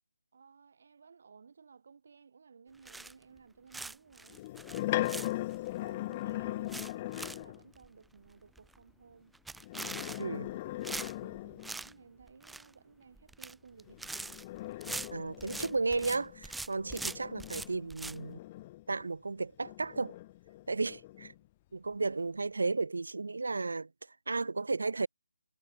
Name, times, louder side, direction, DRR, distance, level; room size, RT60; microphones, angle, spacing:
voice 1, 0.3-5.4 5.8-9.4 10.0-14.4, right 5 dB, 50° right, 6.4 m, -58 dB
sound 1, 2.8-3.4 3.7-5.7 6.1-6.2 6.5-7.4 7.7-7.9 8.3-8.4 8.6-8.9 9.3-10.5 10.8-11.9 12.2-12.7 13.2-13.5 13.8-16.2 16.4-18.2, right 3 dB, ahead, 0.3 m, -42 dB
sound 2, 4.3-7.6 9.6-11.9 13.9-19.1 19.6-21.4, left 17 dB, 20° left, 1.4 m, -39 dB
voice 2, 15.1-18.4 18.9-20.2 20.7-21.3 21.7-25.1, right 3 dB, 75° right, 0.4 m, -34 dB
figure-of-eight pair, 165°, 0 cm